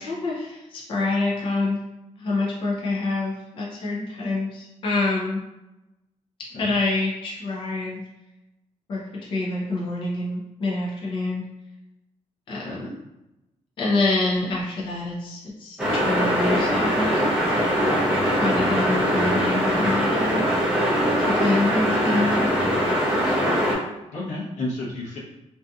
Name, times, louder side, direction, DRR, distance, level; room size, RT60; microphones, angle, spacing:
voice 1, 0.0-1.8 2.2-5.4 6.5-8.0 8.9-9.0 9.3-11.5 12.5-13.0 13.8-17.3 18.4-20.4 21.3-22.4, left 2 dB, 45° left, -5 dB, 0.5 m, -26 dB
sound 1, 15.8-23.7, equal, 5° right, 0.6 m, -22 dB
voice 2, 24.1-25.2, left 2 dB, 90° left, -4 dB, 0.8 m, -31 dB
2.6 x 2.4 x 2.3 m, 0.96 s
wide cardioid pair, 175°, 12 cm